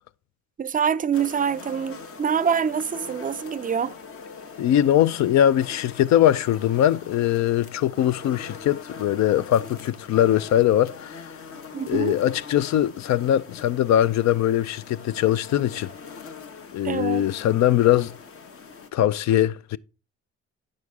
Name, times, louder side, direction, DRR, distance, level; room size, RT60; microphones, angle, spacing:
voice 1, 0.6-4.0 11.7-12.2 16.8-17.2, right 7 dB, 30° right, 0.4 m, -25 dB
sound 1, 1.1-18.9, left 5 dB, 45° left, 1.0 m, -42 dB
voice 2, 4.6-11.3 11.9-15.9 16.7-18.1 18.9-19.8, left 11 dB, 65° left, 0.4 m, -21 dB
8.5 x 6.3 x 3.5 m
cardioid pair, 90°, 30 cm